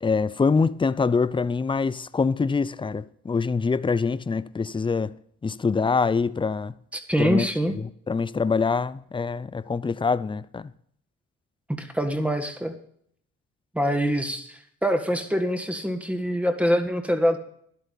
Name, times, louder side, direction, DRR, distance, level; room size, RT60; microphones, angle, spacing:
voice 1, 0.0-5.1 5.4-6.7 7.2-7.5 7.7-10.7, left 4 dB, 15° left, 0.5 m, -24 dB
voice 2, 6.9-7.7 11.8-12.7 13.7-17.4, equal, 5° right, 1.7 m, -24 dB
12.5 x 11.0 x 4.1 m
cardioid pair, 90°, 30 cm